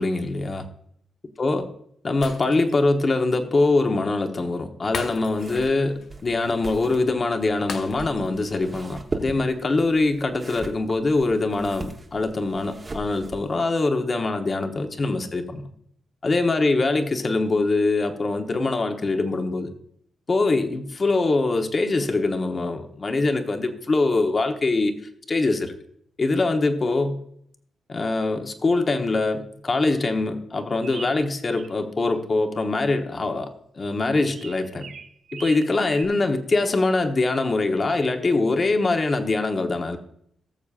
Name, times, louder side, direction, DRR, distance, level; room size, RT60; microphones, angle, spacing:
voice 1, 0.0-0.6 1.4-1.7 2.0-15.7 16.2-19.7 20.3-25.0 25.3-25.7 26.2-27.2 27.9-33.5 33.7-34.9 35.3-40.0, left 3 dB, 35° left, 5 dB, 1.1 m, -23 dB
Shatter, 2.2-2.9 3.3-3.4 4.9-5.7 6.0-6.2 7.7-8.4 8.8-8.9, left 5 dB, 70° left, 0.8 m, -36 dB
sound 1, 5.3-13.6, right 3 dB, 30° right, 1.1 m, -39 dB
sound 2, 30.8-31.7 32.0-32.7 34.3-36.1, right 6 dB, 70° right, 0.8 m, -41 dB
18.5 x 7.0 x 2.5 m, 0.68 s
cardioid pair, 95°, 0 cm